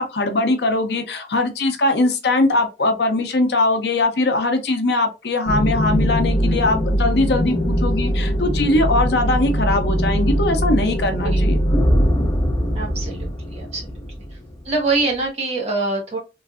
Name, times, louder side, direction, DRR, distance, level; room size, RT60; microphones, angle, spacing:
voice 1, 0.0-11.6, left 2 dB, 65° left, 6 dB, 0.6 m, -20 dB
sound 1, 5.5-14.8, equal, 20° left, 0.4 m, -21 dB
voice 2, 12.7-14.0 14.6-16.2, right 3 dB, 35° right, -2 dB, 1.1 m, -24 dB
3.1 x 2.5 x 2.4 m, 0.28 s
head